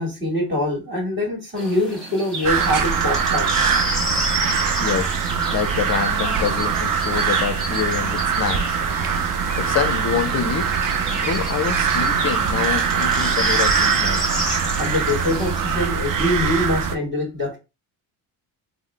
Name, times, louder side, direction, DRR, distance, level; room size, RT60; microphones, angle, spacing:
voice 1, 0.0-3.5 11.9-12.0 14.8-17.6, left 1 dB, 25° right, 1.9 m, -24 dB
sound 1, 1.6-15.9, equal, ahead, 1.7 m, -31 dB
sound 2, 2.4-17.0, right 6 dB, 40° right, 0.6 m, -22 dB
voice 2, 4.8-5.1 5.5-8.8 9.6-10.8 11.1-14.2, left 8 dB, 35° left, 0.5 m, -26 dB
3.5 x 2.1 x 3.2 m
supercardioid pair, 65°, 49 cm